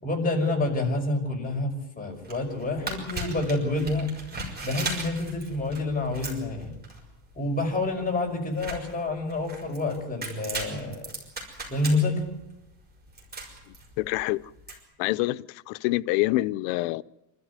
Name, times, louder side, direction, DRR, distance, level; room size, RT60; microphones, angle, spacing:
voice 1, 0.0-4.1 4.6-6.8 7.4-11.1 11.7-12.3, left 2 dB, 20° left, 5.4 m, -28 dB
sound 1, 2.1-14.7, right 2 dB, 20° right, 5.9 m, -38 dB
voice 2, 14.0-14.4 15.0-17.0, left 18 dB, 85° left, 0.7 m, -26 dB
26.5 x 13.5 x 9.6 m
cardioid pair, 140°, 46 cm